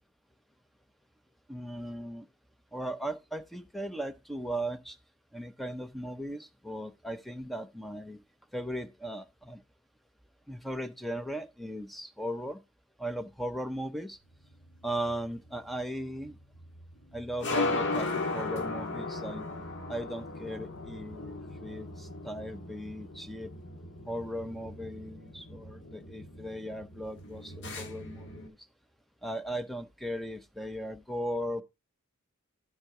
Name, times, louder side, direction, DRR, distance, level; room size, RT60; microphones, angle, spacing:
voice 1, 1.5-2.3 2.7-5.0 5.3-8.2 8.5-9.6 10.5-12.6 13.0-14.2 14.8-16.4 17.1-19.5 19.9-23.5 24.1-28.6 29.2-31.6, equal, ahead, 0.6 m, -37 dB
sound 1, 14.4-28.5, left 2 dB, 55° left, 1.8 m, -37 dB
12.0 x 4.7 x 4.7 m
head